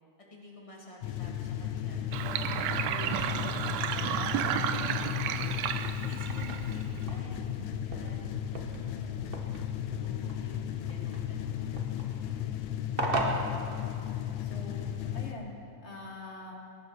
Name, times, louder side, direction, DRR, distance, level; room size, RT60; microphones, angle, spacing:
voice 1, 0.3-2.2 2.8-4.1 4.8-5.4 6.0-9.3 9.9-11.7, equal, 10° left, -3 dB, 2.2 m, -50 dB
sound 1, 1.0-15.3, left 10 dB, 90° left, 2.2 m, -35 dB
Sink (filling or washing), 2.1-7.0, right 10 dB, 85° right, 1.9 m, -32 dB
sound 2, 5.7-14.4, right 2 dB, 55° right, 0.6 m, -39 dB
voice 2, 14.4-15.5 15.8-16.5, left 2 dB, 30° left, 0 dB, 1.6 m, -45 dB
21.0 x 11.5 x 5.9 m, 2.6 s
omnidirectional pair, 3.3 m